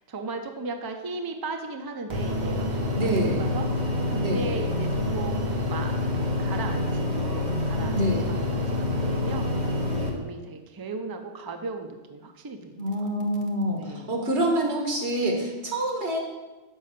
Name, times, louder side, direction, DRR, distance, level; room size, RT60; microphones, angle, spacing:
voice 1, 0.0-12.8 13.7-14.2, right 3 dB, 25° right, 5 dB, 0.5 m, -37 dB
sound 1, 2.1-10.1, left 2 dB, 45° right, 1.2 m, -27 dB
voice 2, 3.0-3.4 4.2-4.4 7.9-8.3 12.8-16.2, right 1 dB, 80° right, 1 dB, 1.7 m, -26 dB
5.5 x 5.5 x 6.6 m, 1.2 s
omnidirectional pair, 1.1 m